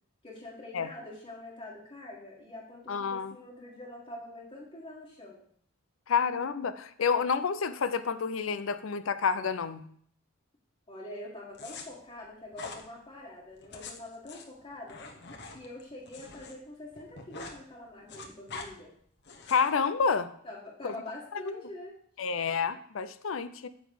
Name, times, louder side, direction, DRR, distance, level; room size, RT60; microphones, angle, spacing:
voice 1, 0.2-5.4 10.9-15.0 15.5-18.9 20.4-22.0, left 1 dB, 30° left, -6 dB, 1.7 m, -45 dB
voice 2, 2.9-3.3 6.1-9.8 19.5-20.3 20.8-20.9 21.3-21.5 22.2-23.7, left 6 dB, 70° left, 12 dB, 0.5 m, -29 dB
sound 1, 11.5-11.8 12.5-12.8 13.6-16.5 16.8-17.6 17.9-18.7 19.2-19.7, left 4 dB, 55° left, 1.1 m, -44 dB
9.4 x 4.0 x 7.1 m, 0.62 s
head